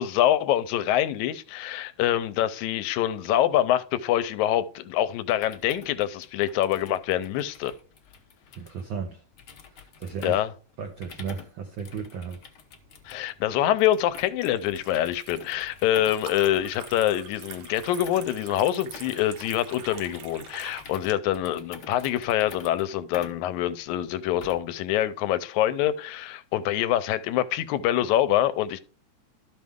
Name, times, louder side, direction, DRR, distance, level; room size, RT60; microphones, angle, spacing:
voice 1, 0.0-7.7 10.2-10.5 13.1-28.8, left 12 dB, 85° left, 2.0 m, -25 dB
sound 1, 5.2-24.8, left 6 dB, 60° left, 1.1 m, -48 dB
voice 2, 8.6-9.2 9.7-10.4 10.8-12.4, right 6 dB, 85° right, 1.1 m, -35 dB
Liquid, 12.8-21.1, right 7 dB, 60° right, 1.6 m, -45 dB
12.5 x 5.7 x 3.5 m
omnidirectional pair, 3.3 m